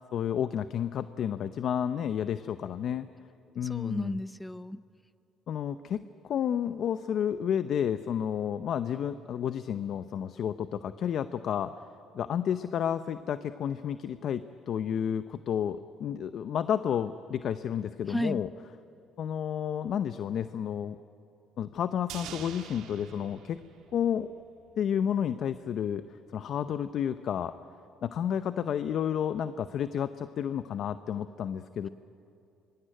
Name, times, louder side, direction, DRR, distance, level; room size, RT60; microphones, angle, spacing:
voice 1, 0.1-3.1 3.5-4.2 5.5-11.7 12.1-18.5 19.2-21.0 21.6-23.6 23.9-24.3 24.8-26.0 26.3-27.5 28.0-31.9, left 9 dB, 60° left, 11 dB, 0.7 m, -31 dB
voice 2, 3.6-4.8 18.1-18.4, left 1 dB, 5° left, 14 dB, 0.6 m, -33 dB
sound 1, 22.1-24.5 24.8-24.9, right 9 dB, 80° right, 2.3 m, -45 dB
25.0 x 24.0 x 9.1 m, 2.6 s
cardioid pair, 90°, 0 cm